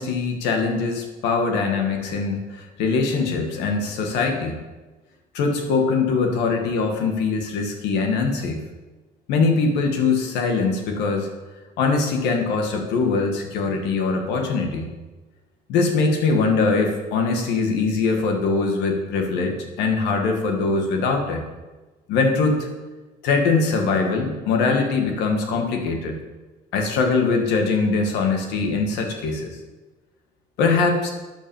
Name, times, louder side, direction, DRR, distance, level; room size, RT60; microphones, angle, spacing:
voice 1, 0.0-4.6 5.3-8.6 9.3-11.3 11.8-14.9 15.7-21.4 22.1-22.7 23.2-26.2 26.7-29.6 30.6-31.1, left 4 dB, 90° left, 3 dB, 2.0 m, -22 dB
9.1 x 7.0 x 7.2 m, 1.2 s
cardioid pair, 110°, 17 cm